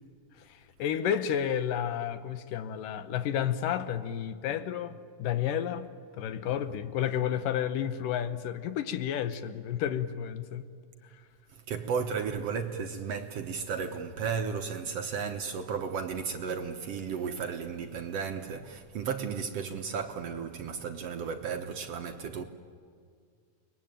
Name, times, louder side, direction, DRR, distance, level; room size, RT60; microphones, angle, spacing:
voice 1, 0.8-5.9 6.2-10.6, left 9 dB, 80° left, 2.7 m, -31 dB
voice 2, 11.5-22.4, right 6 dB, 65° right, 1.7 m, -34 dB
30.0 x 22.0 x 9.0 m
omnidirectional pair, 3.8 m